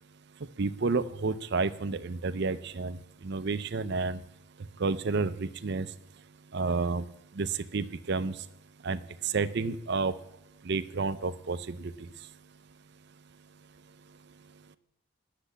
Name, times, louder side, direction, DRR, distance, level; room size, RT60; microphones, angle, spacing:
voice 1, 0.6-3.0 3.2-4.2 4.8-5.9 6.5-7.0 7.4-8.3 8.8-9.0 9.3-10.1 10.7-11.9, right 4 dB, 50° right, 13 dB, 0.5 m, -30 dB
10.0 x 6.8 x 8.4 m, 0.78 s
head